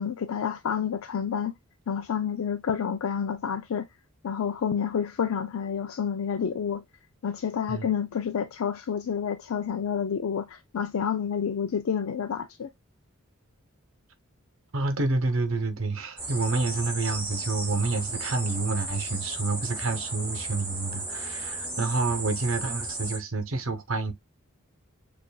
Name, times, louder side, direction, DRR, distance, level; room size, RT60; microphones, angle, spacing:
voice 1, 0.0-1.6 1.9-3.9 4.2-6.8 7.2-12.7, left 7 dB, 70° left, 0.4 m, -29 dB
voice 2, 14.7-24.1, right 3 dB, 60° right, 0.9 m, -28 dB
sound 1, 16.2-23.2, right 2 dB, 10° right, 2.8 m, -34 dB
6.8 x 2.5 x 2.3 m
head